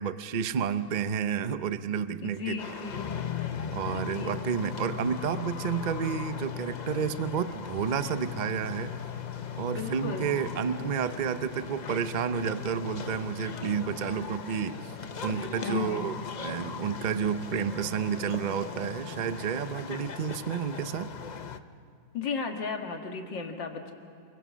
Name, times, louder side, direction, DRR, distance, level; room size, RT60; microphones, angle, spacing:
voice 1, 0.0-2.6 3.7-8.9 9.6-14.9 15.2-21.1, right 7 dB, 75° right, 11 dB, 0.4 m, -31 dB
voice 2, 2.2-3.1 3.9-4.4 9.7-10.4 15.3-16.2 22.1-23.9, left 5 dB, 90° left, 3 dB, 2.7 m, -35 dB
sound 1, 2.6-21.6, left 7 dB, 65° left, 0.4 m, -38 dB
28.0 x 22.5 x 6.2 m, 2.6 s
omnidirectional pair, 1.9 m